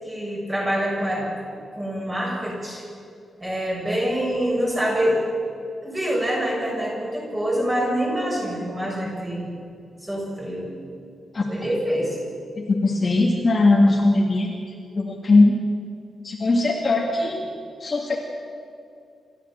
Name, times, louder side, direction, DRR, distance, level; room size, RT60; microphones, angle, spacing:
voice 1, 0.0-2.8 3.4-5.2 5.8-9.5 10.0-10.7 11.5-12.2, equal, 15° right, -3 dB, 6.6 m, -25 dB
voice 2, 12.6-14.5 15.0-15.6 16.2-17.5 17.8-18.2, left 2 dB, 30° left, 0 dB, 1.9 m, -19 dB
27.5 x 13.5 x 7.4 m, 2.4 s
wide cardioid pair, 160°, 0 cm